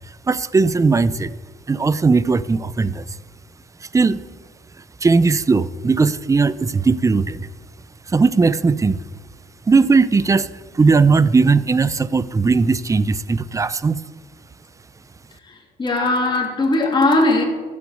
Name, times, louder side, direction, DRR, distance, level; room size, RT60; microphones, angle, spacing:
voice 1, 0.3-1.3 1.7-3.0 3.9-4.2 5.0-7.5 8.1-9.0 9.7-10.5 10.7-14.0, right 4 dB, 20° right, 0.6 m, -17 dB
voice 2, 15.4-17.4, left 2 dB, 25° left, 2.9 m, -19 dB
13.5 x 8.5 x 8.1 m
cardioid pair, 110°, 17 cm